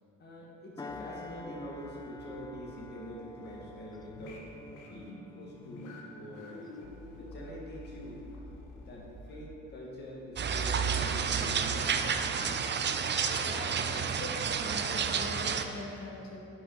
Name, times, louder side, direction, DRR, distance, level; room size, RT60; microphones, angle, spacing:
voice 1, 0.2-4.5 4.9-6.8 7.2-8.5 8.7-12.8, equal, 35° left, -4 dB, 1.6 m, -45 dB
sound 1, 0.8-9.6 10.1-10.3, left 1 dB, 15° left, 0.5 m, -50 dB
sound 2, 0.9-9.4, left 2 dB, 85° left, 1.2 m, -49 dB
sound 3, 10.4-15.6, right 6 dB, 35° right, 0.5 m, -30 dB
voice 2, 13.4-16.4, left 1 dB, 60° left, -4 dB, 1.7 m, -42 dB
8.2 x 5.2 x 5.1 m, 2.7 s
cardioid pair, 90°, 30 cm